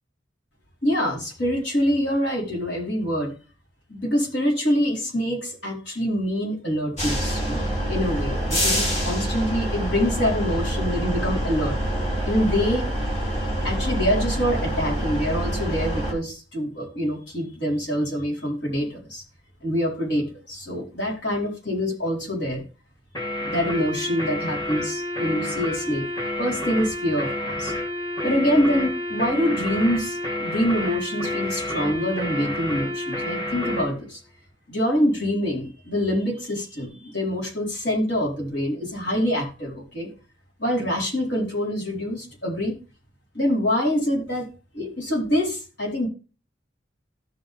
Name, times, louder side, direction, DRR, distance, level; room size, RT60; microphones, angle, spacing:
voice 1, 0.8-3.3 3.9-11.8 12.2-12.9 13.6-19.2 19.6-22.6 23.4-27.7 28.2-34.2 34.7-40.1 40.6-42.8 43.3-44.5 44.7-46.1, equal, 70° left, -1 dB, 4.0 m, -25 dB
sound 1, 7.0-16.1, right 1 dB, 35° left, 3.6 m, -26 dB
sound 2, 23.1-33.9, left 1 dB, 20° left, 2.7 m, -29 dB
14.5 x 5.6 x 3.5 m, 0.34 s
head